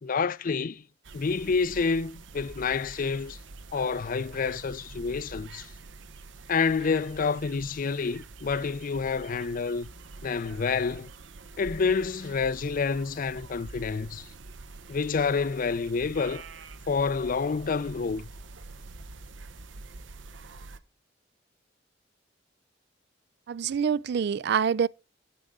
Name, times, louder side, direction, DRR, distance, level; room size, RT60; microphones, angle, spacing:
voice 1, 0.0-0.8 1.1-3.4 3.7-5.7 6.5-9.9 10.2-11.1 11.6-14.3 14.9-16.4 16.9-18.3, left 5 dB, 45° left, 0.5 m, -28 dB
sound 1, 1.0-20.8, right 3 dB, 75° right, 0.9 m, -46 dB
voice 2, 23.5-24.9, right 7 dB, 60° right, 0.4 m, -26 dB
9.8 x 8.4 x 3.7 m
head